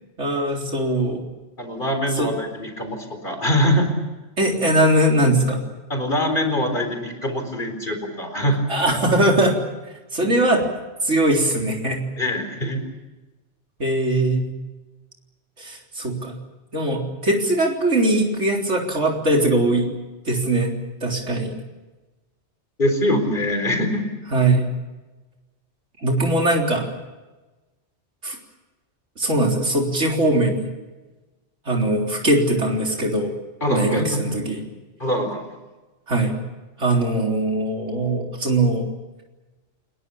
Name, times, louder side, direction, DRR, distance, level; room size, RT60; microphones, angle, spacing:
voice 1, 0.2-1.2 2.2-2.3 4.4-5.6 8.7-9.6 10.1-10.6 11.0-12.0 13.8-14.5 15.6-16.4 16.7-19.9 20.3-20.7 21.0-21.5 24.3-24.6 26.0-26.9 28.2-28.4 29.2-30.7 31.7-33.3 33.7-34.6 36.1-36.4 36.8-38.9, right 1 dB, 90° right, 1 dB, 4.2 m, -20 dB
voice 2, 1.6-3.9 5.9-8.6 12.2-12.8 22.8-24.0 33.6-34.2 35.0-35.4, equal, 45° left, 6 dB, 4.5 m, -23 dB
28.5 x 21.5 x 7.1 m, 1.2 s
omnidirectional pair, 1.2 m